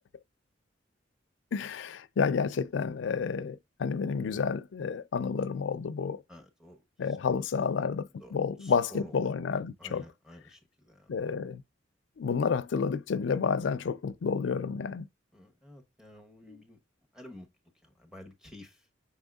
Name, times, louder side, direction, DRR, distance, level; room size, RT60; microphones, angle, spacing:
voice 1, 1.5-6.2 7.0-10.0 11.1-11.6 12.2-15.1 16.5-16.6, left 5 dB, 75° left, 0.4 m, -30 dB
voice 2, 6.3-6.8 7.3-7.4 8.2-8.3 8.6-9.2 9.8-11.1 15.3-16.8 17.1-17.5 17.8-18.8, left 1 dB, 5° right, 0.9 m, -50 dB
5.9 x 3.6 x 2.3 m
head